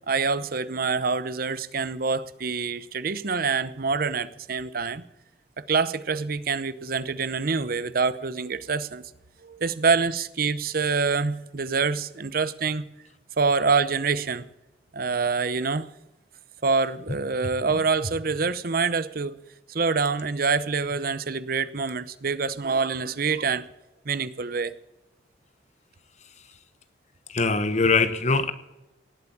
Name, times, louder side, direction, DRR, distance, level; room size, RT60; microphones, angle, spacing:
voice 1, 0.1-5.0 5.6-9.0 9.4-12.8 13.4-14.4 14.9-15.9 16.6-19.4 19.7-23.7 24.0-24.7, right 4 dB, 55° right, 15 dB, 0.8 m, -26 dB
voice 2, 27.3-28.5, left 4 dB, 40° left, 12 dB, 1.2 m, -22 dB
18.5 x 8.3 x 7.1 m, 0.95 s
head